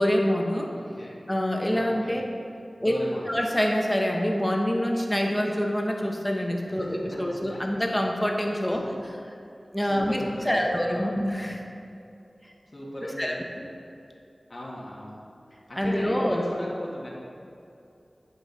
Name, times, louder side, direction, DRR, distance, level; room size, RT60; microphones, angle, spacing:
voice 1, 0.0-0.7 1.3-2.2 2.8-2.9 3.3-9.1 9.7-11.6 13.0-13.7 15.8-16.4, equal, 10° left, 1 dB, 0.9 m, -26 dB
voice 2, 0.8-1.2 1.7-2.2 2.8-3.3 7.5-7.6 9.9-11.2 12.7-13.4 14.5-15.2 15.7-17.1, left 1 dB, 55° left, -6 dB, 1.4 m, -37 dB
10.5 x 5.5 x 4.1 m, 2.7 s
wide cardioid pair, 70°, 0 cm